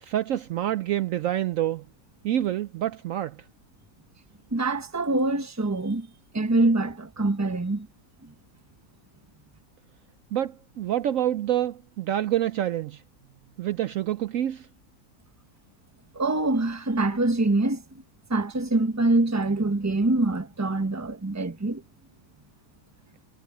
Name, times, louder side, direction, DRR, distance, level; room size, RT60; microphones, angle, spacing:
voice 1, 0.0-1.9 2.2-3.4 10.3-13.0 13.6-14.7, right 12 dB, 65° right, 0.9 m, -27 dB
voice 2, 4.5-6.1 6.3-7.9 16.1-17.8 18.3-21.8, right 2 dB, 10° right, 1.0 m, -24 dB
omnidirectional pair, 1.6 m